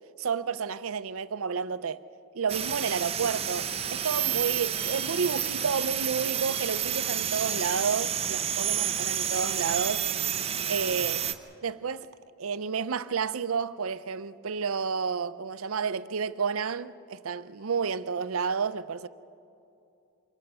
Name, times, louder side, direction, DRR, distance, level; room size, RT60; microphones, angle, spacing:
voice 1, 0.2-2.0 2.3-10.1 10.7-11.3 11.6-12.1 12.4-19.1, right 6 dB, 80° right, 0.6 m, -31 dB
sound 1, 2.5-11.3, right 9 dB, 30° right, 0.7 m, -30 dB
25.5 x 21.0 x 5.5 m
head